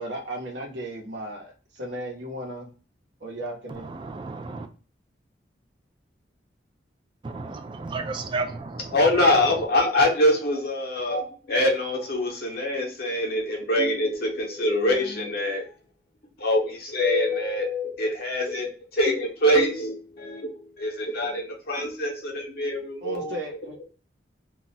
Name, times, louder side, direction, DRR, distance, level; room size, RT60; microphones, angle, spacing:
voice 1, 0.0-2.7 3.2-3.9 23.0-23.9, right 1 dB, 75° right, 0 dB, 0.8 m, -35 dB
voice 2, 3.8-4.7 7.2-9.4, right 4 dB, 25° right, 7 dB, 0.3 m, -33 dB
voice 3, 8.9-15.7 16.4-23.4, left 1 dB, 55° left, -1 dB, 0.7 m, -24 dB
2.3 x 2.1 x 3.9 m, 0.36 s
head